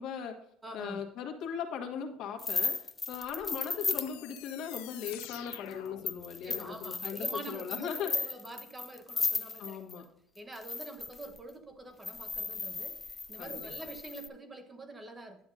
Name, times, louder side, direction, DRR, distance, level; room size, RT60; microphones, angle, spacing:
voice 1, 0.0-0.4 0.7-2.8 3.1-8.3 9.6-10.1 13.4-13.6, left 7 dB, 65° left, 3 dB, 1.4 m, -38 dB
voice 2, 0.6-1.0 6.4-10.0 10.4-15.4, right 2 dB, 15° right, 6 dB, 0.9 m, -46 dB
sound 1, 2.4-10.0 10.5-11.4 12.0-14.3, left 4 dB, 20° left, 0.3 m, -35 dB
sound 2, 3.9-6.8, left 14 dB, 90° left, 0.5 m, -48 dB
10.5 x 7.0 x 2.5 m, 0.73 s
cardioid pair, 125°, 0 cm